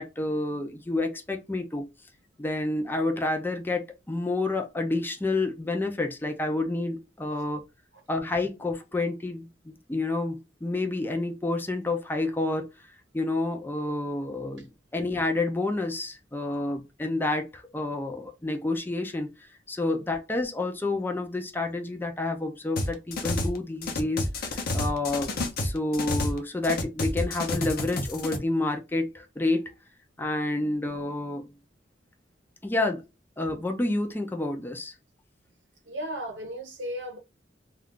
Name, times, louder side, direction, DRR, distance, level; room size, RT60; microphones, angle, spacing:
voice 1, 0.0-1.9 2.4-7.6 8.1-12.7 13.1-14.7 14.9-19.3 19.7-25.3 25.6-29.7 30.2-31.5 32.6-33.0 33.4-34.9, left 2 dB, 10° left, 0.4 m, -29 dB
sound 1, 22.8-23.6 23.8-26.4 26.6-28.4, left 2 dB, 55° left, 0.7 m, -29 dB
voice 2, 35.9-37.2, equal, 80° right, 0.8 m, -35 dB
2.4 x 2.3 x 3.6 m
head